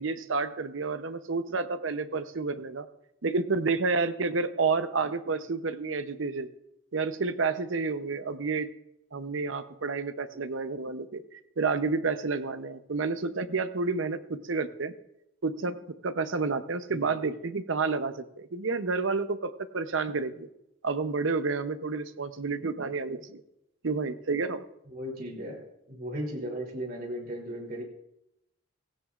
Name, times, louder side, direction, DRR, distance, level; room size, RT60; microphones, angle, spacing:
voice 1, 0.0-2.9 3.2-6.5 6.9-8.7 9.1-14.9 15.4-20.5 20.8-23.4 23.8-24.6, right 4 dB, 75° right, 11 dB, 0.8 m, -30 dB
voice 2, 24.9-25.6 25.9-27.8, equal, 50° right, 0 dB, 3.0 m, -36 dB
16.5 x 15.5 x 2.5 m, 0.83 s
head